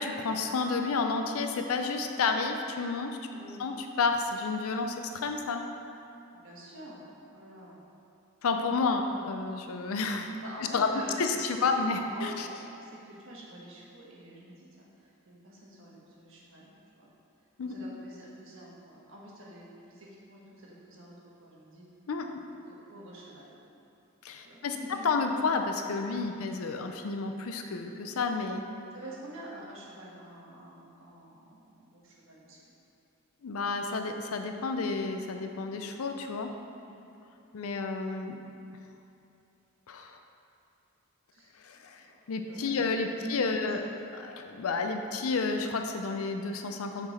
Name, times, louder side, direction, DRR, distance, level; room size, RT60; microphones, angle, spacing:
voice 1, 0.0-3.2 3.6-5.6 8.4-10.3 10.7-10.9 11.2-12.5 17.6-17.7 22.1-22.3 24.2-24.8 25.0-28.6 33.4-36.5 37.5-38.4 39.9-40.2 41.6-43.8 44.1-47.1, left 4 dB, 80° left, 5 dB, 0.5 m, -30 dB
voice 2, 3.3-3.6 6.3-7.0 7.3-7.8 9.0-9.3 10.4-11.3 11.7-12.2 12.5-17.1 17.6-21.1 21.4-21.8 22.6-23.6 24.4-25.2 28.9-32.6 36.8-37.1 41.3-42.1 42.4-43.7, right 1 dB, 65° right, -4 dB, 1.3 m, -48 dB
5.9 x 4.9 x 4.2 m, 2.7 s
head